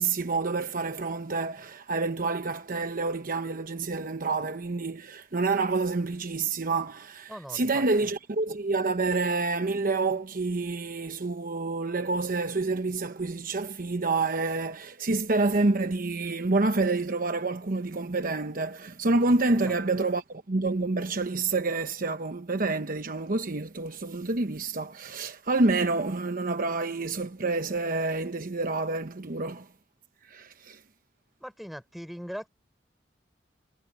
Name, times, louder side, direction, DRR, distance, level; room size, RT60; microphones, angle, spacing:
voice 1, 0.0-29.7 30.2-30.8, right 3 dB, 50° right, 1.0 m, -28 dB
voice 2, 7.3-7.8 19.5-19.8 31.4-32.5, equal, ahead, 6.5 m, -40 dB
head